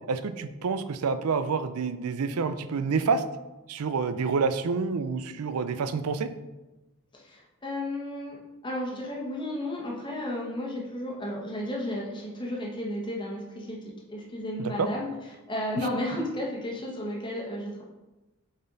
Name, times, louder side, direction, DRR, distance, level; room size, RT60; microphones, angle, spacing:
voice 1, 0.1-3.2 3.7-6.3 14.6-14.9, right 5 dB, 85° right, 12 dB, 0.5 m, -28 dB
voice 2, 7.1-8.4 8.6-13.8 14.1-15.1 15.5-17.8, left 1 dB, 20° left, -3 dB, 1.2 m, -33 dB
6.7 x 4.4 x 3.9 m, 1.1 s
head